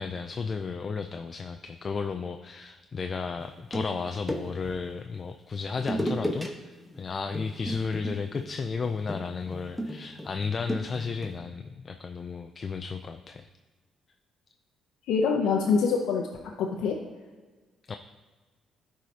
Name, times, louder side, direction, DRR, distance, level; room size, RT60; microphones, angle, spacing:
voice 1, 0.0-13.5 17.9-18.0, left 5 dB, 40° left, 7 dB, 0.4 m, -33 dB
sound 1, 3.4-4.8 5.8-6.5 6.8-7.0 7.3-11.4, equal, 5° left, 1.2 m, -34 dB
voice 2, 15.1-16.3 16.6-17.0, left 5 dB, 90° left, 0 dB, 0.7 m, -24 dB
13.0 x 4.8 x 2.8 m, 1.3 s
cardioid pair, 90°, 0 cm